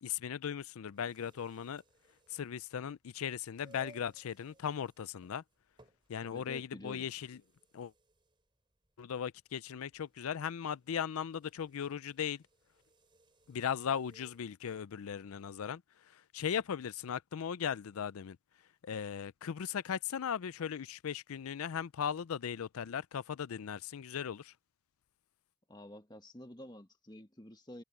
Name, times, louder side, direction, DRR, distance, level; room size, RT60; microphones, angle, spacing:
voice 1, 0.0-1.8 2.3-5.4 6.1-7.4 7.7-7.9 9.0-12.4 13.5-15.8 16.1-18.4 18.8-24.5, left 8 dB, 80° left, 0.4 m, -38 dB
sound 1, 0.9-14.5, right 1 dB, 20° right, 4.1 m, -64 dB
voice 2, 6.2-7.1 25.7-27.8, left 1 dB, 20° left, 1.5 m, -50 dB
head